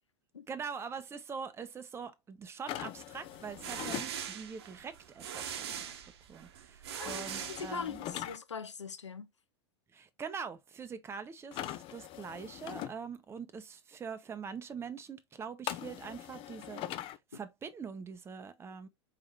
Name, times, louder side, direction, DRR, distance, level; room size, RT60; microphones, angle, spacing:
voice 1, 0.5-6.0 6.3-8.0 9.9-17.0 17.3-18.9, right 6 dB, 15° right, 0.6 m, -43 dB
sound 1, 2.7-4.1 7.1-8.4 11.5-12.9 15.7-17.2, left 13 dB, 35° left, 0.5 m, -41 dB
sound 2, 3.3-8.2, right 8 dB, 65° right, 0.9 m, -42 dB
voice 2, 7.0-9.3, left 5 dB, 85° left, 0.6 m, -41 dB
4.5 x 3.6 x 3.1 m
figure-of-eight pair, 90°, 15 cm